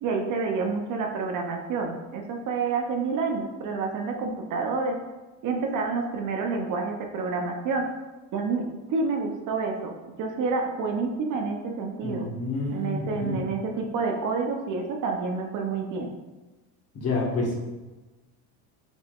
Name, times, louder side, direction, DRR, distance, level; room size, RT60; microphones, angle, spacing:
voice 1, 0.0-5.0 5.4-7.9 8.3-9.9 10.2-12.3 12.7-16.1, right 4 dB, 45° right, 3 dB, 0.7 m, -28 dB
voice 2, 12.0-13.4 16.9-17.5, left 3 dB, 35° left, -1 dB, 1.2 m, -29 dB
5.0 x 3.8 x 2.4 m, 1.2 s
supercardioid pair, 105°, 44 cm